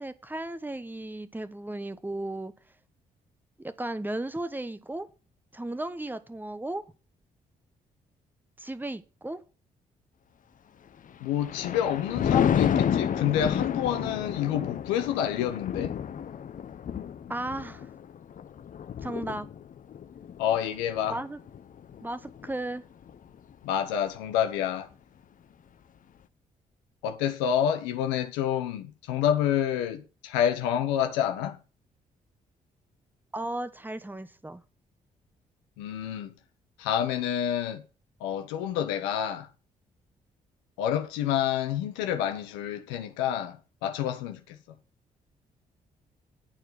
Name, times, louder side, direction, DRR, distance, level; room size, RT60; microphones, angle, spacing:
voice 1, 0.0-2.5 3.6-5.1 5.5-6.8 8.6-9.4 17.3-17.9 19.0-19.5 21.1-21.4 22.0-22.8 33.3-34.6, right 1 dB, 10° right, 1.1 m, -35 dB
Thunder, 11.1-22.6 23.0-23.3, left 8 dB, 45° left, 0.6 m, -31 dB
voice 2, 11.2-16.0 20.4-21.2 23.6-24.9 27.0-31.6 35.8-36.3 36.8-37.8 38.2-39.5 40.8-44.6, left 10 dB, 75° left, 0.9 m, -28 dB
11.5 x 4.5 x 7.6 m
hypercardioid pair, 40°, 19 cm